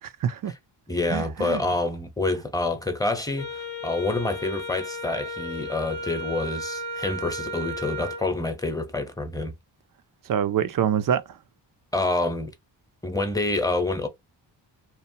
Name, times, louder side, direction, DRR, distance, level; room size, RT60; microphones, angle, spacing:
voice 1, 0.0-0.5 1.1-1.6 10.3-11.4, right 9 dB, 50° right, 0.5 m, -26 dB
voice 2, 0.9-9.5 11.9-12.5 13.0-14.1, left 2 dB, 10° left, 0.8 m, -27 dB
Wind instrument woodwind instrument, 3.4-8.3, equal, 90° left, 0.8 m, -34 dB
2.9 x 2.1 x 2.7 m
cardioid pair, 70°, 45 cm